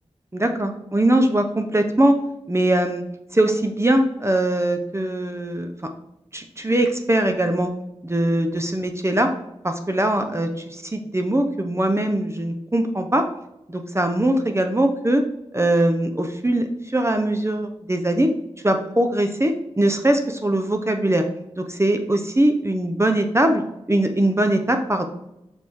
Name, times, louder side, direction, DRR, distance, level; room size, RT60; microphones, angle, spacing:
voice 1, 0.3-2.2 2.5-3.0 3.3-5.9 6.3-7.7 8.0-9.3 9.6-13.3 13.7-15.2 15.5-18.3 18.6-21.2 21.6-23.6 23.9-25.1, right 1 dB, 25° right, 6 dB, 0.7 m, -21 dB
6.6 x 3.5 x 4.6 m, 0.86 s
cardioid pair, 45°, 12 cm